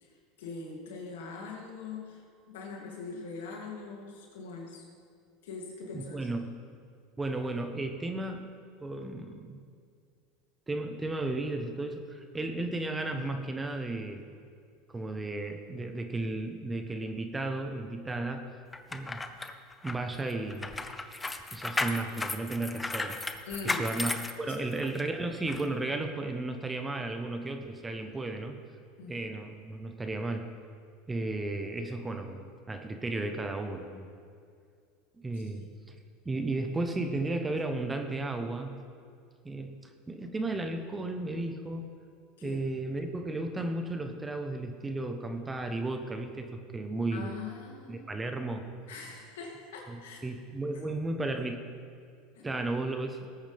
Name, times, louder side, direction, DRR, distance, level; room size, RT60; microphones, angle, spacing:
voice 1, 0.0-4.8 5.4-6.3 23.5-23.9 24.6-24.7 29.0-29.2 35.3-35.7 42.4-42.6 47.1-48.1 48.9-50.2 50.7-50.8 52.3-52.5, left 4 dB, 80° left, -1 dB, 2.9 m, -42 dB
voice 2, 5.9-6.5 7.2-8.5 8.8-9.6 10.7-14.3 14.9-18.5 18.9-19.2 19.8-20.7 21.5-23.2 23.6-24.1 24.4-28.6 29.1-30.5 31.1-34.1 35.2-35.9 36.2-38.8 39.4-39.8 40.1-41.9 42.4-47.3 47.9-48.7 49.9-51.6 52.4-53.3, right 2 dB, 15° right, 6 dB, 1.1 m, -34 dB
sound 1, 18.7-25.0 25.5-25.6, left 3 dB, 15° left, 0.7 m, -35 dB
19.0 x 8.8 x 3.6 m, 2.3 s
hypercardioid pair, 100°, 0 cm